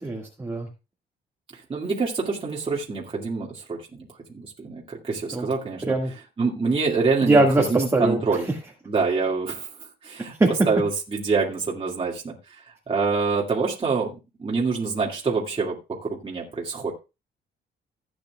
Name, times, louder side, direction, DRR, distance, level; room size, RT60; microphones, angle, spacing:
voice 1, 0.0-0.7 5.3-5.5 5.8-6.1 7.2-8.5 10.4-10.5, right 2 dB, 15° right, 1 dB, 1.9 m, -21 dB
voice 2, 1.7-4.1 4.3-5.9 6.4-7.4 7.7-8.4 8.9-9.7 10.0-10.3 10.7-15.8 16.0-16.9, right 4 dB, 30° right, -3 dB, 2.2 m, -26 dB
16.5 x 8.7 x 2.3 m, 0.28 s
cardioid pair, 120°, 19 cm